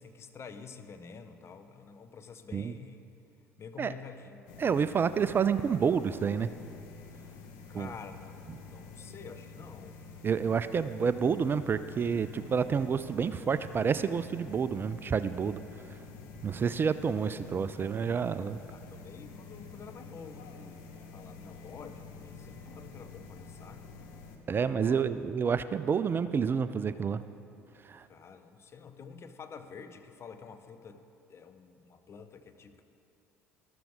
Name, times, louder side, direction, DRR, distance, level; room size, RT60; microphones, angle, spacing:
voice 1, 0.0-3.1 3.6-4.5 7.7-10.0 18.7-23.9 24.8-25.0 28.1-31.0 31.3-32.8, left 5 dB, 35° left, 8 dB, 0.8 m, -49 dB
sound 1, 4.5-24.4, left 4 dB, 60° left, 1.2 m, -48 dB
voice 2, 4.6-6.5 7.7-7.9 10.2-15.6 16.4-18.6 24.5-27.2 27.9-28.1, right 6 dB, 30° right, 13 dB, 0.3 m, -29 dB
13.0 x 13.0 x 3.6 m, 2.7 s
figure-of-eight pair, 60°, 7 cm